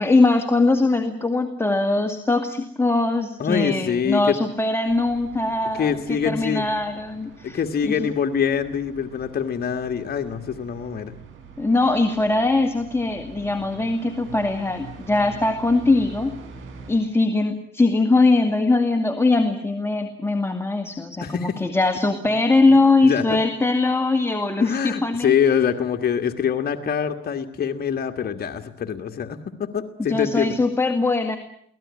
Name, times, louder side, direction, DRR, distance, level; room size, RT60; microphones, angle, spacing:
voice 1, 0.0-8.1 11.6-16.3 16.9-25.3 30.1-31.4, left 3 dB, 10° left, 5 dB, 2.1 m, -21 dB
voice 2, 3.4-4.4 5.7-6.7 7.4-11.1 21.2-21.6 23.0-23.4 24.6-30.6, left 7 dB, 50° left, 5 dB, 1.7 m, -24 dB
Floor Fan, 4.9-16.9, right 5 dB, 80° right, 6.9 m, -44 dB
24.0 x 17.5 x 9.7 m, 0.67 s
cardioid pair, 90°, 20 cm